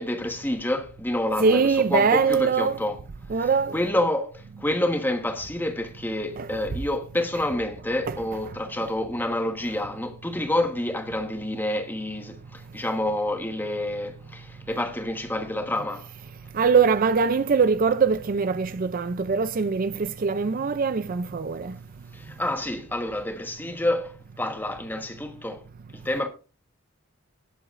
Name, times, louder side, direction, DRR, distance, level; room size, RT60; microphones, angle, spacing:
voice 1, 0.0-3.0 3.3-16.1 22.1-25.6 25.9-26.3, left 1 dB, 10° left, 1.3 m, -28 dB
voice 2, 1.4-2.8 3.3-3.8 6.4-6.6 8.1-8.2 16.5-21.8, right 5 dB, 40° right, 0.4 m, -22 dB
18.0 x 7.9 x 2.5 m
head